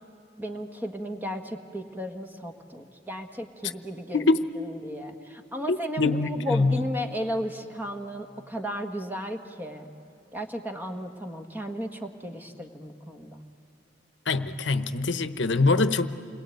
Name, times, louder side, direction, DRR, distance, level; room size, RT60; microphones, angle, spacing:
voice 1, 0.4-4.3 4.8-9.9 10.3-13.4, equal, 10° right, 5 dB, 1.6 m, -34 dB
voice 2, 5.7-6.8 14.3-16.1, left 3 dB, 70° left, 11 dB, 1.0 m, -24 dB
29.0 x 22.0 x 9.3 m, 2.7 s
head